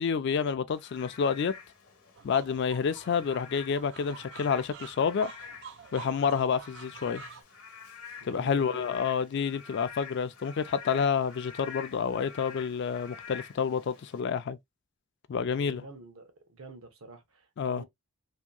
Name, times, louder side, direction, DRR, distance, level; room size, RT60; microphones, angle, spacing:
voice 1, 0.0-1.5 2.2-5.3 5.9-7.2 8.2-14.6 15.3-15.8 17.6-17.8, left 6 dB, 50° left, 0.3 m, -29 dB
Frog / Rain, 0.7-14.2, left 6 dB, 75° left, 0.9 m, -48 dB
sound 1, 2.1-7.4, right 7 dB, 55° right, 0.4 m, -48 dB
voice 2, 8.2-8.9 15.5-17.9, right 2 dB, 70° right, 0.9 m, -48 dB
2.8 x 2.6 x 2.3 m
head